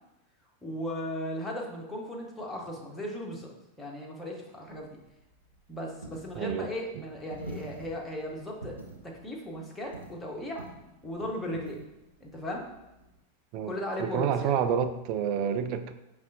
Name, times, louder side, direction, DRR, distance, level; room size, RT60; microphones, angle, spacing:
voice 1, 0.6-3.5 3.8-5.0 5.7-10.7 11.0-11.8 12.2-12.7 13.6-14.5, left 1 dB, 10° left, -1 dB, 0.8 m, -37 dB
Coin (dropping), 4.7-13.2, right 2 dB, 90° right, 0.6 m, -47 dB
voice 2, 6.4-6.7 13.5-15.9, right 8 dB, 40° right, 9 dB, 0.3 m, -29 dB
5.2 x 3.1 x 2.6 m, 0.92 s
figure-of-eight pair, 90°, 0 cm